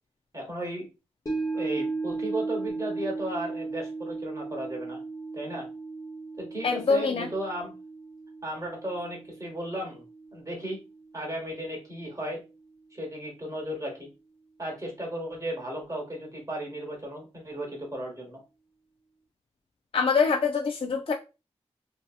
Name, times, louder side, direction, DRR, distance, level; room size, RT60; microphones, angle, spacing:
voice 1, 0.3-0.8 1.5-5.0 5.3-5.7 6.4-7.7 8.4-10.0 10.3-10.8 11.1-12.4 12.9-14.1 14.6-18.4, right 1 dB, 30° right, 1.0 m, -35 dB
sound 1, 1.3-11.6 12.0-12.1, right 3 dB, 30° left, 0.9 m, -36 dB
voice 2, 6.6-7.3 19.9-21.1, left 5 dB, 50° left, 0.3 m, -24 dB
2.6 x 2.6 x 2.3 m
cardioid pair, 40°, 12 cm